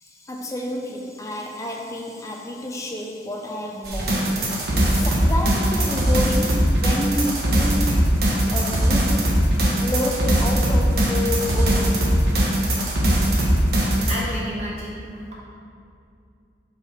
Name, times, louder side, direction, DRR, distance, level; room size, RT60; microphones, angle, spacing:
voice 1, 0.0-8.0 8.5-9.2 9.8-12.1, left 1 dB, 20° left, 0 dB, 0.6 m, -30 dB
sound 1, 3.8-14.1, right 1 dB, 60° right, 1.1 m, -20 dB
voice 2, 14.1-15.0, equal, 40° right, -6 dB, 1.3 m, -30 dB
6.5 x 5.7 x 3.5 m, 2.5 s
head